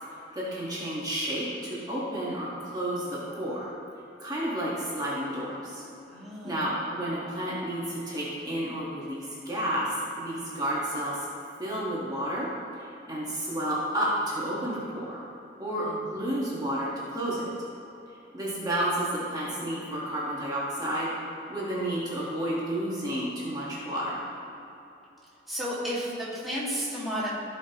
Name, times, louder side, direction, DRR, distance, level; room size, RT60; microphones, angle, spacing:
voice 1, 0.0-3.7 4.2-5.8 6.4-11.3 11.6-12.5 12.7-15.2 15.6-17.5 18.3-21.1 21.5-24.3, right 1 dB, 20° right, -7 dB, 1.6 m, -31 dB
voice 2, 6.1-6.7 15.8-16.1 25.5-27.3, equal, ahead, -9 dB, 2.0 m, -33 dB
15.5 x 5.3 x 3.0 m, 3.0 s
head